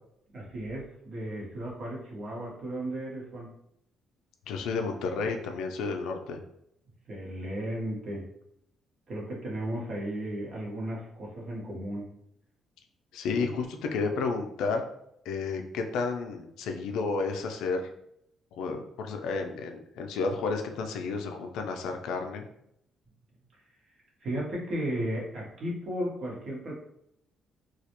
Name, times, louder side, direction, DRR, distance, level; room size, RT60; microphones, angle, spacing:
voice 1, 0.3-3.5 7.1-8.3 9.1-12.1 13.3-13.5 24.2-26.8, right 1 dB, 55° right, -4 dB, 1.0 m, -35 dB
voice 2, 4.5-6.4 13.1-14.8 15.3-17.9 18.5-22.4, left 4 dB, 85° left, 5 dB, 0.3 m, -31 dB
2.3 x 2.0 x 2.9 m, 0.76 s
cardioid pair, 110°, 0 cm